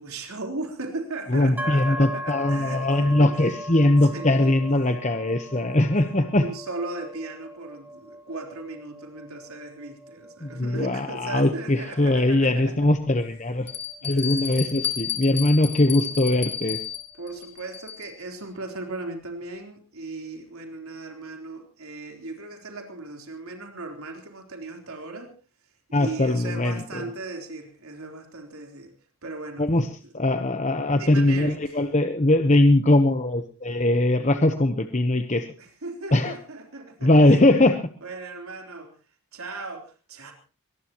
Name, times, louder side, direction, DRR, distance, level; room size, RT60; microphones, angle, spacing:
voice 1, 0.0-3.4 4.0-4.9 5.3-5.9 6.4-12.7 14.0-14.5 17.1-25.3 25.9-28.9 29.2-29.7 30.0-30.1 31.0-31.8 35.6-39.0 39.3-40.3, right 3 dB, 90° right, 3 dB, 3.9 m, -37 dB
voice 2, 1.3-6.5 10.4-13.7 14.0-16.8 25.9-27.0 29.6-29.9 30.1-35.4 36.1-36.3 37.0-37.8, left 1 dB, 35° left, 8 dB, 1.0 m, -21 dB
sound 1, 1.6-15.3, equal, 10° right, 1.7 m, -39 dB
Bell, 12.1-12.2 12.8-12.9 13.7-18.2, left 8 dB, 50° left, 2.9 m, -32 dB
23.5 x 19.0 x 3.0 m, 0.35 s
head